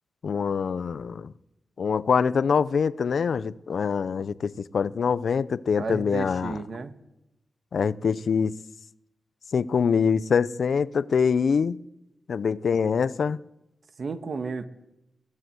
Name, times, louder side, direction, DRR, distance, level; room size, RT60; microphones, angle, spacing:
voice 1, 0.2-1.3 1.8-6.6 7.7-8.6 9.5-11.8 12.3-13.4, left 6 dB, 65° left, 0.7 m, -24 dB
voice 2, 5.8-6.9 14.0-14.7, right 4 dB, 50° right, 1.6 m, -32 dB
22.0 x 17.5 x 8.0 m
wide cardioid pair, 150°, 0 cm